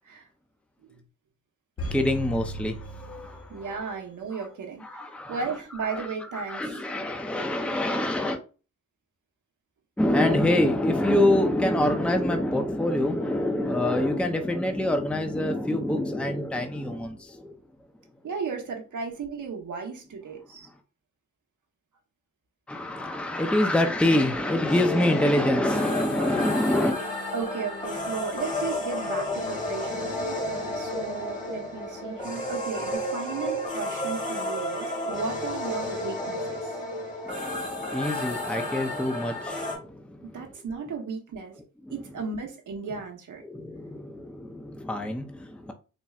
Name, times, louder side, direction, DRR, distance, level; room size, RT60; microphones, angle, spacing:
sound 1, 1.8-4.0 4.3-4.4, equal, 50° left, 0.9 m, -36 dB
voice 1, 1.9-3.9 4.8-5.5 5.9-8.4 10.0-17.6 22.7-26.9 37.2-40.4 41.8-41.9 43.4-45.7, left 1 dB, 5° left, 0.6 m, -26 dB
voice 2, 3.5-6.9 16.9-17.0 18.2-20.7 27.3-36.8 40.3-41.6 41.9-43.4, right 5 dB, 80° right, 1.1 m, -35 dB
sound 2, 24.1-32.9, left 3 dB, 90° left, 1.5 m, -47 dB
sound 3, 24.7-39.8, left 1 dB, 25° left, 1.6 m, -32 dB
4.2 x 3.0 x 2.4 m
cardioid pair, 65°, 30 cm